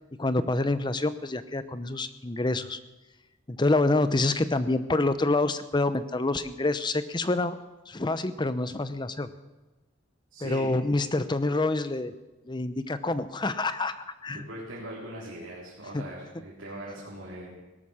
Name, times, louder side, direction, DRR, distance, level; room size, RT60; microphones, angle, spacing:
voice 1, 0.2-2.8 3.5-7.6 7.9-9.3 10.4-12.1 12.5-14.5 15.9-16.0, left 2 dB, 20° left, 12 dB, 0.7 m, -27 dB
voice 2, 10.3-10.7 14.3-17.6, right 1 dB, 70° right, -6 dB, 3.9 m, -40 dB
17.5 x 13.0 x 6.4 m, 1.1 s
head